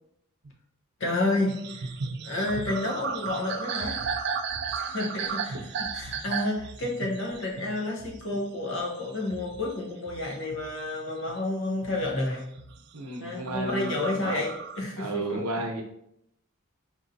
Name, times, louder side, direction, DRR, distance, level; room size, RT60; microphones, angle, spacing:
voice 1, 1.0-1.9 2.2-4.0 4.8-5.5 5.9-12.5 13.2-15.4, left 2 dB, 55° left, -1 dB, 0.8 m, -30 dB
sound 1, 1.5-11.4 11.8-12.8 13.3-14.8, right 5 dB, 50° right, 0.3 m, -35 dB
voice 2, 12.9-14.4 15.0-15.8, right 2 dB, 80° right, 2 dB, 0.8 m, -33 dB
4.6 x 2.7 x 2.6 m, 0.78 s
head